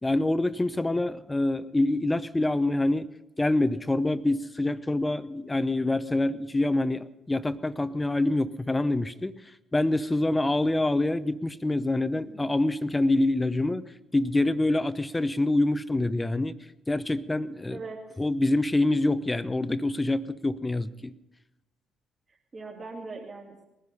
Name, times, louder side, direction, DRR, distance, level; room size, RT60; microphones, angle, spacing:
voice 1, 0.0-3.1 3.4-9.4 9.7-16.6 16.9-17.8 18.2-21.1, left 2 dB, 15° left, 14 dB, 0.8 m, -26 dB
voice 2, 12.1-12.5 17.7-18.2 22.3-23.6, right 3 dB, 35° right, -6 dB, 3.0 m, -41 dB
20.0 x 10.5 x 5.5 m, 0.99 s
hypercardioid pair, 50°, 0 cm